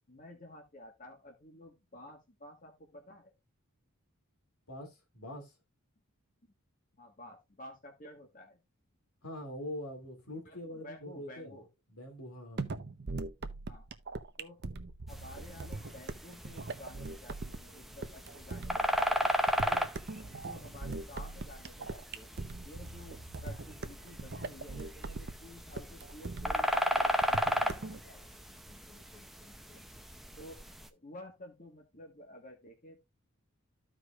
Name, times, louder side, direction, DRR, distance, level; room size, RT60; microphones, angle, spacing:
voice 1, 0.1-3.3 7.0-8.6 10.4-11.7 13.7-13.9 14.4-14.6 15.0-19.2 19.6-19.9 20.2-22.3 22.6-29.9 30.3-30.6 30.9-33.0, left 1 dB, 35° left, 1.4 m, -52 dB
voice 2, 4.7-5.6 9.2-11.6 11.9-12.8, left 1 dB, 80° left, 2.5 m, -43 dB
sound 1, 12.6-28.0, right 3 dB, 50° right, 0.7 m, -41 dB
sound 2, 15.1-30.9, equal, ahead, 0.5 m, -36 dB
14.0 x 4.9 x 2.4 m
head